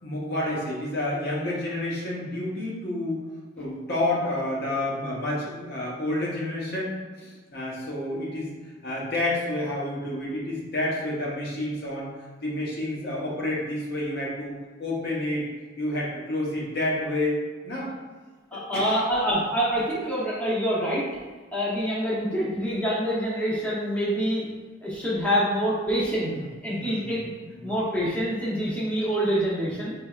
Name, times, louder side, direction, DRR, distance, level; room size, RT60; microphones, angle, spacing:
voice 1, 0.0-3.3 3.6-8.5 8.8-12.1 12.4-15.5 15.8-17.9 18.5-19.0 26.2-26.4 26.8-27.2 27.5-27.7, left 1 dB, 50° left, -5 dB, 0.8 m, -29 dB
voice 2, 18.5-21.0 21.5-24.5 24.8-26.3 26.6-27.3 27.6-29.9, equal, 10° left, -8 dB, 0.7 m, -26 dB
4.2 x 3.3 x 2.3 m, 1.4 s
head